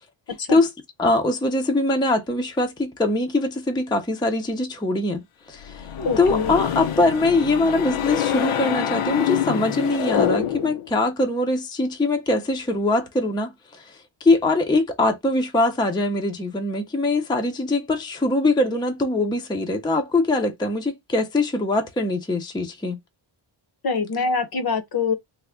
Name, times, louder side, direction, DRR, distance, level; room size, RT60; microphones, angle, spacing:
voice 1, 1.0-5.2 5.5-5.9 6.2-23.0, left 2 dB, 10° left, 0.4 m, -22 dB
sound 1, 5.6-10.9, left 9 dB, 85° left, 0.7 m, -26 dB
voice 2, 6.0-6.5 23.8-25.1, left 4 dB, 50° left, 0.7 m, -24 dB
3.4 x 2.1 x 3.5 m
wide cardioid pair, 145°, 49 cm